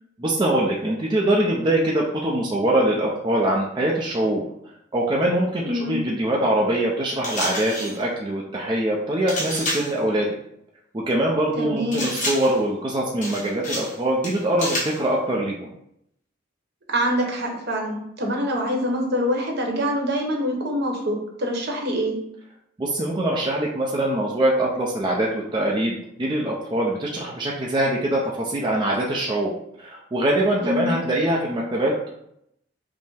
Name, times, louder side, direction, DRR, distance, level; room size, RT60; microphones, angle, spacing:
voice 1, 0.2-4.4 4.9-10.3 10.9-15.7 22.8-29.5 29.8-32.1, right 1 dB, 25° right, -3 dB, 0.4 m, -23 dB
voice 2, 5.6-6.0 11.6-12.0 16.9-22.1 30.6-31.0, equal, 55° right, 0 dB, 0.9 m, -25 dB
sound 1, 7.2-8.0 9.3-10.0 11.9-12.6 13.2-14.0 14.2-15.0, left 1 dB, 40° left, 1.1 m, -29 dB
5.3 x 2.0 x 3.3 m, 0.76 s
head